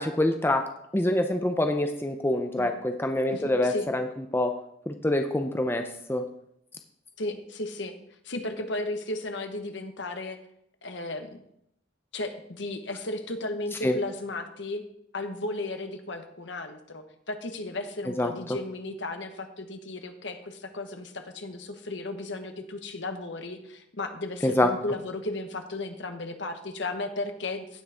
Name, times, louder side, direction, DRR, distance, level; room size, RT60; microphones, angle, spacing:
voice 1, 0.0-4.0 4.3-4.6 4.9-6.2 13.8-14.0 18.2-18.3 24.4-24.7, left 1 dB, 10° left, 6 dB, 0.5 m, -26 dB
voice 2, 3.3-3.9 7.2-7.9 8.2-10.4 10.8-11.4 12.1-14.8 15.1-27.8, left 2 dB, 65° left, 7 dB, 1.2 m, -35 dB
16.0 x 6.3 x 3.5 m, 0.75 s
head